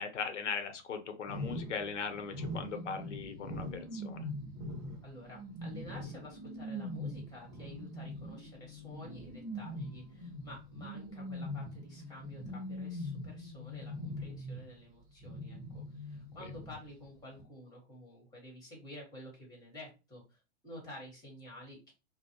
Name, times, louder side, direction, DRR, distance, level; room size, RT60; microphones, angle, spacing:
voice 1, 0.0-4.3, left 6 dB, 90° left, 7 dB, 0.7 m, -39 dB
sound 1, 1.3-14.9 15.2-17.1 17.4-17.5, left 1 dB, 25° right, 1.4 m, -42 dB
voice 2, 5.0-21.9, left 1 dB, 10° left, -1 dB, 1.3 m, -51 dB
2.5 x 2.0 x 2.8 m, 0.29 s
hypercardioid pair, 130°, 35 cm